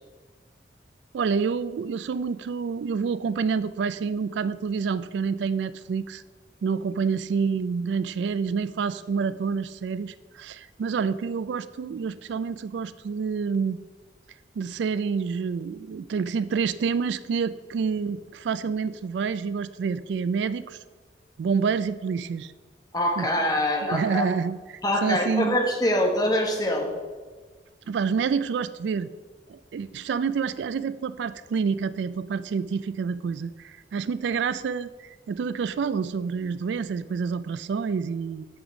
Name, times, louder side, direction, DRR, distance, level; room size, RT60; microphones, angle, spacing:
voice 1, 1.1-6.2 6.6-13.8 14.6-20.8 21.4-22.5 23.2-23.3 23.9-25.6 27.9-29.1 29.5-38.5, right 5 dB, 70° right, 16 dB, 0.3 m, -28 dB
voice 2, 22.9-24.2 24.8-26.9, left 1 dB, 20° left, 2 dB, 1.3 m, -24 dB
7.1 x 6.9 x 5.0 m, 1.4 s
head